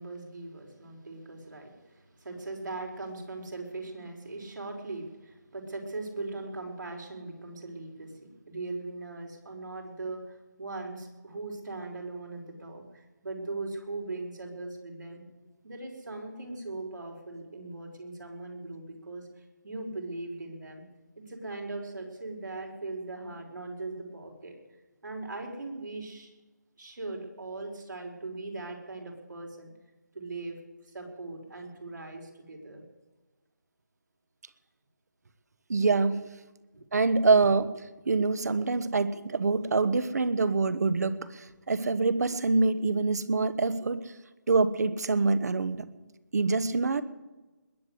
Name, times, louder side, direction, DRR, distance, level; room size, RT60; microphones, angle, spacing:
voice 1, 0.0-15.2 15.6-20.8 21.2-24.6 25.0-26.3 26.8-29.7 30.1-30.6 30.8-32.9, right 2 dB, 80° right, 1 dB, 5.0 m, -39 dB
voice 2, 35.7-36.2 36.9-37.7 38.1-44.0 44.5-45.9 46.3-47.0, right 3 dB, 60° right, 14 dB, 1.1 m, -25 dB
20.5 x 8.2 x 8.1 m, 1.2 s
hypercardioid pair, 170°, 10 cm